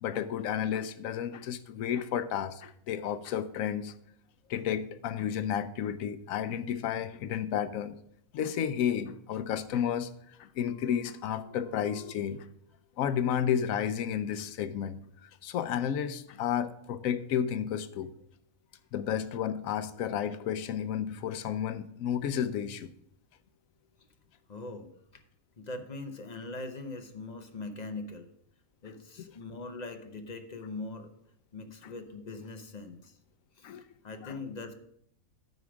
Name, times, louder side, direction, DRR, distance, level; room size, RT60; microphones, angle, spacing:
voice 1, 0.0-3.9 4.5-8.0 8.3-12.5 13.0-18.1 18.9-22.9 31.8-31.9 33.6-33.8 34.2-34.4, left 9 dB, 75° left, 1.0 m, -32 dB
voice 2, 24.5-25.2 25.6-28.3 28.8-31.1 31.5-33.2 33.6-34.7, left 3 dB, 40° left, 0.7 m, -41 dB
9.3 x 4.8 x 6.1 m
omnidirectional pair, 1.5 m